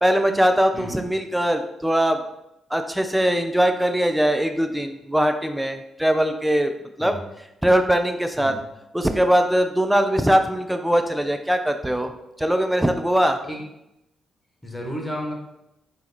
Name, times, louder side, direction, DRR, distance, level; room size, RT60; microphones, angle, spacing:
voice 1, 0.0-2.2 2.7-6.7 7.0-7.2 7.6-8.6 8.9-12.1 12.4-13.4, equal, 5° right, 7 dB, 0.6 m, -21 dB
voice 2, 0.7-1.0 7.0-7.3 8.4-8.6 13.5-13.6 14.6-15.3, equal, 15° left, 0 dB, 1.5 m, -32 dB
3.9 x 3.0 x 4.1 m, 0.86 s
hypercardioid pair, 45°, 0 cm